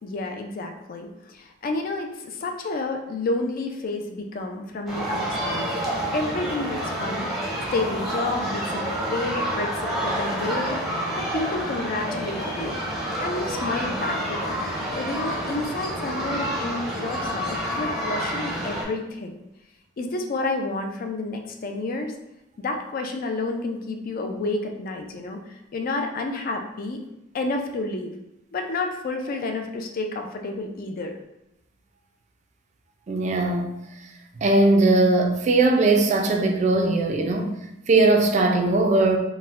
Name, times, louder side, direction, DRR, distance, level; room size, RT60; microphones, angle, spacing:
voice 1, 0.0-5.7 6.1-7.3 7.7-10.8 11.2-12.7 13.2-14.6 14.9-19.3 20.0-22.1 22.6-27.0 27.3-28.1 28.5-31.1, left 2 dB, 45° left, 4 dB, 0.4 m, -30 dB
sound 1, 4.9-18.8, equal, ahead, 0.7 m, -28 dB
voice 2, 33.1-33.7 34.4-37.5 37.9-39.2, right 2 dB, 35° right, 3 dB, 0.3 m, -19 dB
4.1 x 2.1 x 2.4 m, 0.86 s
head